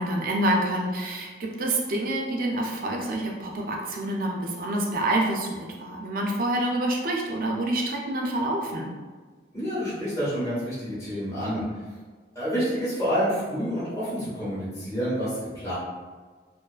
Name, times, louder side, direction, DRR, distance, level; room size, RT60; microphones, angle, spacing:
voice 1, 0.0-8.9, right 1 dB, 50° right, 0 dB, 0.4 m, -27 dB
voice 2, 9.5-11.6 12.3-15.7, equal, 15° left, -10 dB, 1.0 m, -28 dB
2.5 x 2.3 x 2.3 m, 1.4 s
head